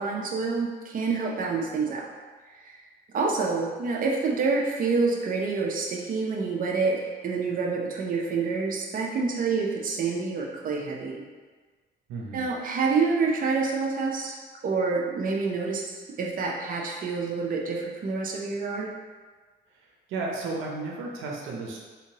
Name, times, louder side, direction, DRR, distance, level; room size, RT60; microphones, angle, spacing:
voice 1, 0.0-2.1 2.6-2.7 3.1-11.2 12.3-14.4 14.6-18.9, right 4 dB, 45° right, -1 dB, 0.6 m, -27 dB
voice 2, 12.1-12.5 19.7-21.8, right 3 dB, 85° right, -1 dB, 0.6 m, -34 dB
3.6 x 2.8 x 2.8 m, 1.4 s
cardioid pair, 90°, 20 cm